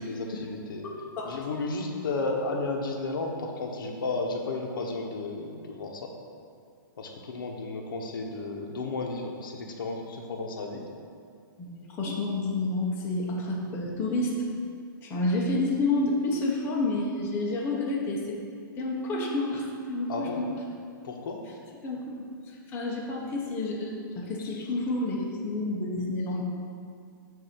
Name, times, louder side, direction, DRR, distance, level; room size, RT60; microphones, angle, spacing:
voice 1, 0.0-0.8 1.2-6.1 7.0-10.8 20.1-20.4 21.0-21.4 24.5-24.7, left 3 dB, 70° left, 1 dB, 0.9 m, -33 dB
voice 2, 0.8-1.4 11.6-14.3 15.0-18.4 18.8-20.6 21.8-22.0 22.5-26.4, left 2 dB, 20° left, -3 dB, 0.7 m, -29 dB
7.8 x 2.6 x 5.9 m, 2.3 s
hypercardioid pair, 155°, 12 cm